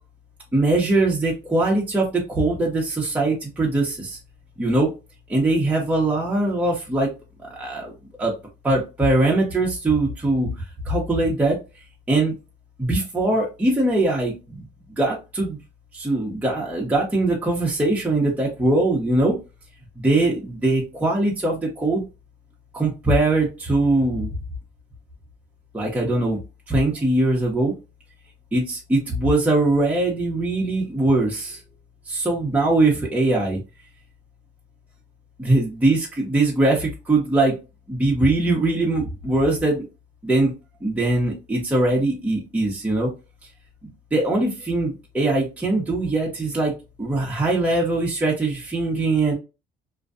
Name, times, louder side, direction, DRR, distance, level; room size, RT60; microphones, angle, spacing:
voice 1, 0.5-4.2 4.6-4.9 5.3-7.1 7.5-7.9 8.2-8.3 8.6-11.6 12.1-12.3 12.8-14.6 15.0-15.6 15.9-19.4 20.0-22.0 22.7-24.3 25.7-26.4 26.7-27.7 28.5-31.6 32.1-33.6 35.4-37.6 37.9-39.8 40.2-40.5 40.8-43.1 44.1-49.3, right 2 dB, 10° right, -3 dB, 0.7 m, -21 dB
2.6 x 2.1 x 2.4 m, 0.28 s
cardioid pair, 110°, 17 cm